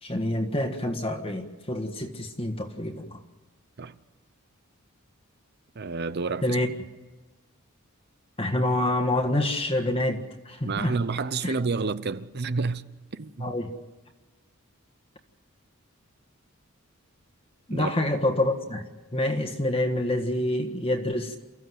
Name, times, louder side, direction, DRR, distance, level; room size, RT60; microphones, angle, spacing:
voice 1, 0.0-3.2 6.4-6.7 8.4-10.2 10.4-10.9 11.4-11.5 13.4-13.7 17.7-18.8 19.1-21.4, left 1 dB, 25° left, 1.7 m, -27 dB
voice 2, 5.8-6.6 10.6-12.8 13.1-13.5 17.7-17.9, right 4 dB, 50° right, 0.7 m, -29 dB
29.0 x 15.0 x 7.9 m
head